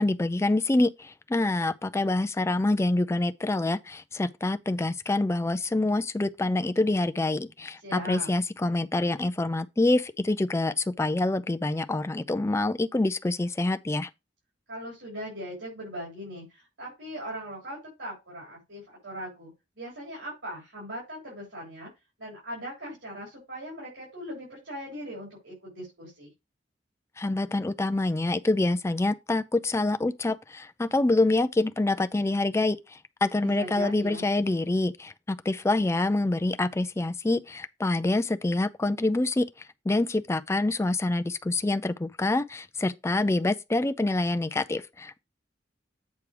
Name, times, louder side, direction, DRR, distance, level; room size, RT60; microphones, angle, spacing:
voice 1, 0.0-14.1 27.2-32.8 33.2-39.5 39.9-45.2, left 2 dB, 15° left, 0.4 m, -26 dB
voice 2, 7.8-8.3 14.7-19.5 19.8-21.9 22.2-26.3 33.4-34.2, equal, 90° right, 4.9 m, -39 dB
8.4 x 3.2 x 5.9 m
head